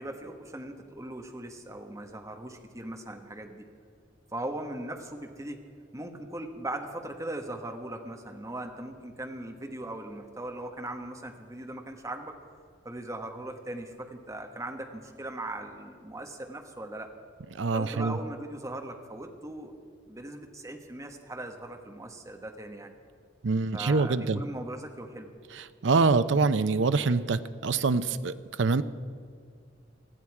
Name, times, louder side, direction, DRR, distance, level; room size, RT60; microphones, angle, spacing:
voice 1, 0.0-3.6 4.3-5.6 5.9-12.3 12.8-17.1 17.7-19.7 20.1-22.9 23.7-25.3, right 1 dB, 15° right, 3 dB, 1.3 m, -39 dB
voice 2, 17.5-18.2 23.4-24.4 25.5-28.8, right 4 dB, 75° right, 13 dB, 0.6 m, -25 dB
20.0 x 14.0 x 4.8 m, 2.2 s
head